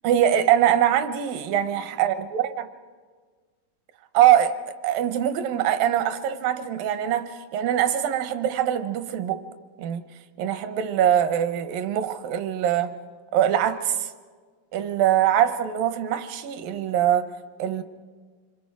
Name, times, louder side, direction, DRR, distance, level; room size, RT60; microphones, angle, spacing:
voice 1, 0.0-2.7 4.1-9.4 9.8-10.0 10.4-12.9 13.3-14.1 14.7-17.3 17.6-17.8, right 10 dB, 80° right, 10 dB, 2.5 m, -23 dB
26.5 x 23.5 x 4.7 m, 1.5 s
omnidirectional pair, 4.1 m